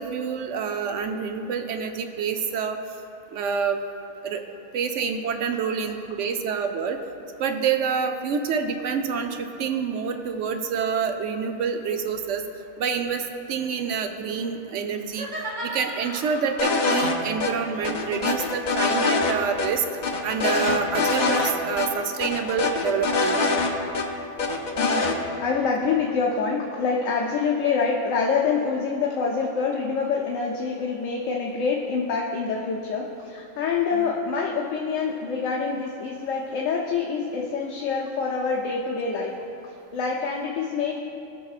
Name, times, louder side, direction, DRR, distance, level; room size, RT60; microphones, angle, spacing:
voice 1, 0.0-2.8 3.3-3.8 4.2-4.4 4.7-7.0 7.4-12.4 12.8-15.3 15.6-19.8 20.2-23.4 33.9-34.1, right 6 dB, 70° right, 6 dB, 0.9 m, -27 dB
sound 1, 15.1-16.8 17.7-20.7, right 1 dB, 35° right, 1.2 m, -37 dB
sound 2, 16.6-17.1 17.4-17.5 17.8-19.3 19.6-19.7 20.0-21.5 21.8-21.9 22.2-24.0 24.4-25.2, left 3 dB, 50° left, 0.6 m, -24 dB
voice 2, 24.7-39.4 39.6-41.0, left 5 dB, 75° left, -1 dB, 1.0 m, -26 dB
18.0 x 6.1 x 2.4 m, 2.7 s
omnidirectional pair, 1.4 m